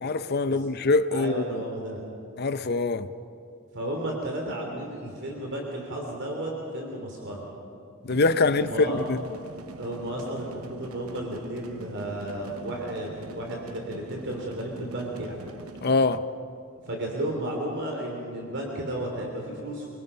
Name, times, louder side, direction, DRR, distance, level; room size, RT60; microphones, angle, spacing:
voice 1, 0.0-1.6 2.4-3.1 8.0-9.2 15.8-16.3, left 3 dB, 50° left, 0.7 m, -24 dB
voice 2, 1.1-2.0 3.7-7.4 8.5-9.0 9.8-15.4 16.9-19.9, right 1 dB, 55° right, 3.4 m, -33 dB
sound 1, 8.1-16.2, right 2 dB, 85° right, 1.0 m, -44 dB
25.5 x 24.0 x 5.7 m
head